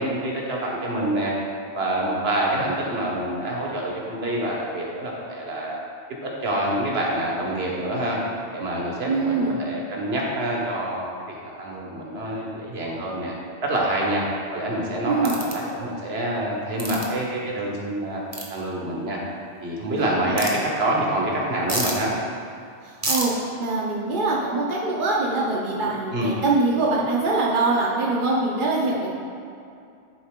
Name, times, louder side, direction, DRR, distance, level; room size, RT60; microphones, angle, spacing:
voice 1, 0.0-1.3 1.7-5.8 6.2-8.2 8.5-11.1 11.4-13.3 13.6-14.2 14.5-18.2 18.5-22.1 26.1-26.4, right 1 dB, 70° right, -3 dB, 1.4 m, -26 dB
voice 2, 9.1-9.6 15.1-15.4 20.2-20.4 22.8-29.1, right 3 dB, 55° right, -4 dB, 0.8 m, -23 dB
sound 1, 15.2-15.5 16.8-17.1 18.3-18.5 20.4-20.5 21.7-21.9 23.0-23.3, right 1 dB, 15° right, 0.9 m, -27 dB
10.0 x 4.0 x 3.7 m, 2.5 s
omnidirectional pair, 1.1 m